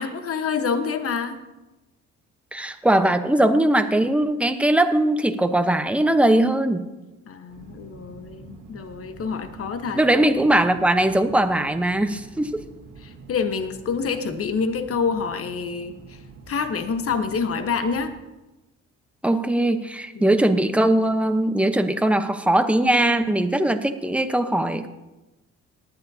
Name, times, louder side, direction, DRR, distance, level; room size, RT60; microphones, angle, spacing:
voice 1, 0.0-1.4 7.2-10.0 13.0-16.2 16.5-18.1 20.1-20.3, left 5 dB, 50° left, 8 dB, 1.2 m, -27 dB
voice 2, 2.5-6.8 9.9-12.6 19.2-24.9, right 1 dB, 5° right, 8 dB, 0.9 m, -20 dB
sound 1, 7.5-18.1, right 4 dB, 85° right, 1.8 m, -46 dB
18.5 x 11.0 x 2.8 m, 1.0 s
cardioid pair, 90°, 30 cm